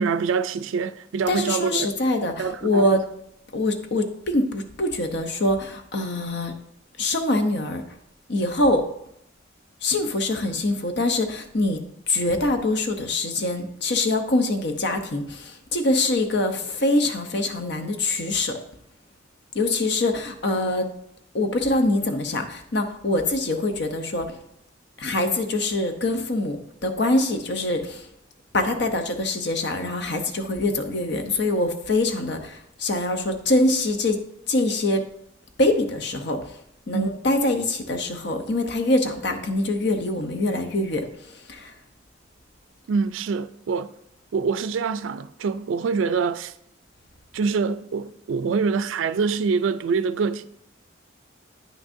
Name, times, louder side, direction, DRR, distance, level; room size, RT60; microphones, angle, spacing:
voice 1, 0.0-1.9 2.4-2.9 36.9-37.1 42.9-43.9 44.3-46.5 47.3-50.5, right 5 dB, 80° right, 0.4 m, -25 dB
voice 2, 1.3-3.1 3.5-6.5 7.0-7.8 8.3-8.8 9.8-11.8 12.1-18.6 19.5-20.9 21.3-24.4 25.0-28.1 28.5-34.2 34.5-35.1 35.6-36.6 36.9-41.7, left 2 dB, 60° left, 0.8 m, -24 dB
9.3 x 6.2 x 2.6 m
head